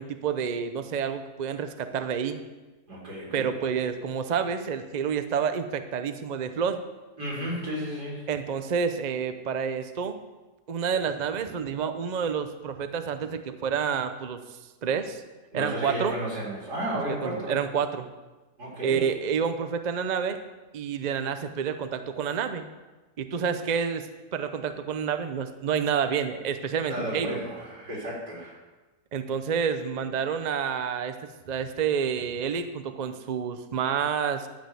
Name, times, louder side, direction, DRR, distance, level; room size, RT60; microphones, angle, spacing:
voice 1, 0.0-2.4 3.3-6.8 8.3-10.2 10.7-14.4 14.8-15.2 15.5-16.1 17.2-18.1 18.8-20.4 20.7-22.7 23.2-27.4 29.1-34.5, right 7 dB, 50° right, 9 dB, 0.5 m, -29 dB
voice 2, 2.9-3.5 7.2-8.3 15.5-17.6 18.6-19.1 26.9-28.6, equal, 85° right, -4 dB, 4.2 m, -33 dB
11.5 x 6.3 x 8.1 m, 1.2 s
omnidirectional pair, 1.7 m